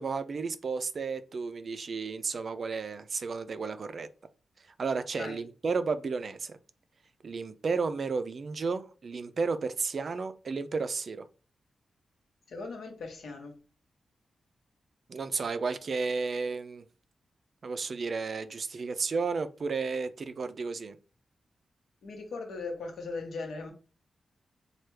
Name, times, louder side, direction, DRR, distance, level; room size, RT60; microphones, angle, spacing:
voice 1, 0.0-4.1 4.8-6.6 7.2-11.3 15.1-16.9 17.6-21.0, right 4 dB, 55° right, 0.3 m, -33 dB
voice 2, 12.5-13.5 22.0-23.7, left 3 dB, 85° left, 0.9 m, -38 dB
3.2 x 2.3 x 3.1 m
cardioid pair, 75°, 0 cm